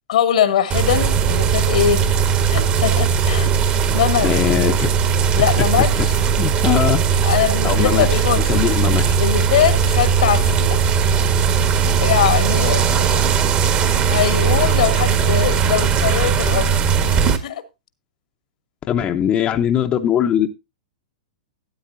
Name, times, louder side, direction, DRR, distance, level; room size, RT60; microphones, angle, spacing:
voice 1, 0.1-2.1 2.5-3.5 3.9-4.3 5.3-6.1 7.2-8.6 9.2-10.8 12.0-13.1 14.1-16.7 17.4-17.6, left 9 dB, 70° left, 1.5 m, -21 dB
sound 1, 0.7-17.4, right 7 dB, 35° right, 1.6 m, -18 dB
voice 2, 4.2-4.9 6.4-7.0 7.6-8.1 8.5-9.2 18.9-20.5, left 9 dB, 30° left, 0.9 m, -20 dB
13.0 x 9.3 x 2.7 m
hypercardioid pair, 115°, 4 cm